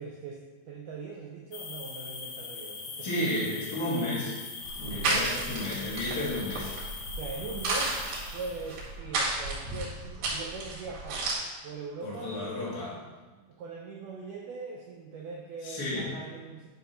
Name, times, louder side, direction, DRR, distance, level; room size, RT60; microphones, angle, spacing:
voice 1, 0.0-3.5 4.8-5.3 6.0-6.3 7.1-11.3 11.6-12.4 13.5-16.7, right 4 dB, 85° right, -1 dB, 1.8 m, -41 dB
sound 1, 1.5-8.8, left 5 dB, 70° left, 2.3 m, -41 dB
voice 2, 3.0-4.4 4.8-6.7 12.0-13.0 15.6-16.1, left 1 dB, 30° left, -8 dB, 2.3 m, -32 dB
sound 2, 4.6-11.3, right 2 dB, 70° right, 3.7 m, -33 dB
9.5 x 3.7 x 5.5 m, 1.3 s
omnidirectional pair, 4.5 m